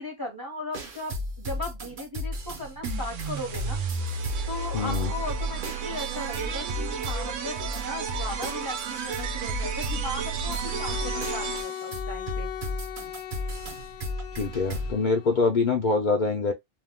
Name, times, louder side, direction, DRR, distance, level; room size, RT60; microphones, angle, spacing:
voice 1, 0.0-3.8 4.5-12.5, left 2 dB, 25° right, 0.6 m, -37 dB
sound 1, 0.7-14.9, left 1 dB, 50° right, 0.9 m, -35 dB
sound 2, 2.8-12.0, right 6 dB, 85° right, 1.1 m, -32 dB
voice 2, 4.7-5.1 14.4-16.5, left 4 dB, 55° left, 0.5 m, -24 dB
Bowed string instrument, 10.5-15.5, left 11 dB, 75° left, 0.9 m, -38 dB
2.6 x 2.2 x 3.4 m
omnidirectional pair, 1.3 m